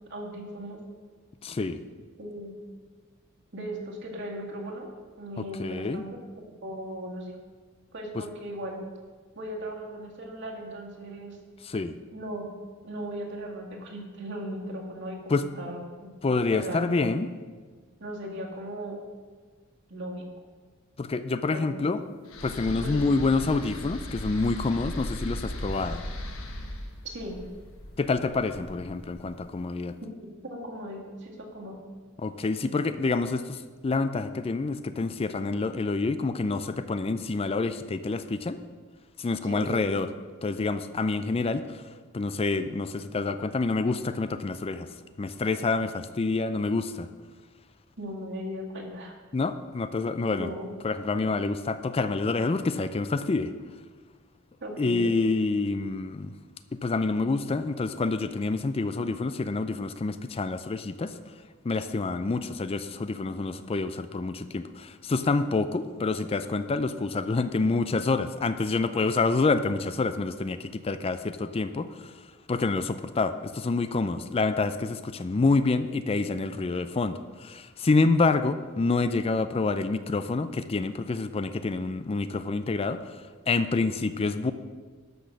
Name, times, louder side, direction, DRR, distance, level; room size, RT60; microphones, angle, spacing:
voice 1, 0.1-0.8 2.2-2.6 3.5-6.2 6.6-7.3 7.9-8.8 9.4-11.4 12.1-12.5 12.8-16.1 16.5-17.1 18.0-19.0 19.9-20.3 21.5-21.9 22.8-23.3 27.0-27.4 30.5-31.8 39.4-39.8 48.0-49.2 50.3-50.7 54.6-55.1, equal, 60° right, 0 dB, 2.1 m, -37 dB
voice 2, 1.4-1.8 5.4-6.0 8.2-8.3 11.6-12.0 15.3-15.5 16.2-17.3 21.0-22.0 22.4-26.0 28.0-30.0 32.2-38.6 39.2-40.1 40.4-41.8 42.1-44.9 45.2-47.1 49.3-50.5 50.8-53.5 54.8-56.3 56.7-61.2 61.6-72.1 72.5-84.5, left 3 dB, 30° left, 11 dB, 0.4 m, -27 dB
sound 1, 22.3-29.5, left 1 dB, 80° left, 1.6 m, -38 dB
12.0 x 6.2 x 6.4 m, 1.5 s
head